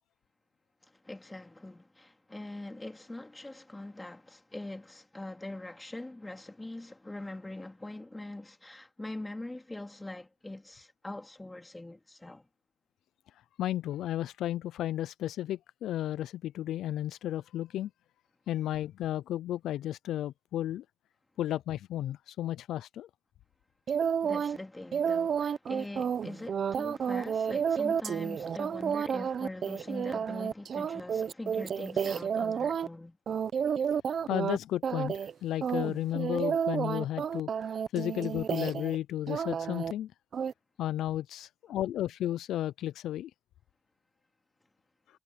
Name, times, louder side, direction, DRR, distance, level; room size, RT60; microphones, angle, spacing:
voice 1, 1.0-12.5 24.2-33.2, left 2 dB, 10° left, 2.9 m, -43 dB
voice 2, 13.6-17.9 18.5-20.8 21.4-23.1 34.3-35.1 35.4-37.5 37.9-40.1 40.8-43.3, left 12 dB, 75° left, 0.4 m, -33 dB
sound 1, 23.9-24.6 24.9-32.9 33.3-34.6 34.8-35.3 35.6-39.0 39.3-39.9 40.3-40.5, right 7 dB, 50° right, 0.8 m, -31 dB
cardioid pair, 105°, 0 cm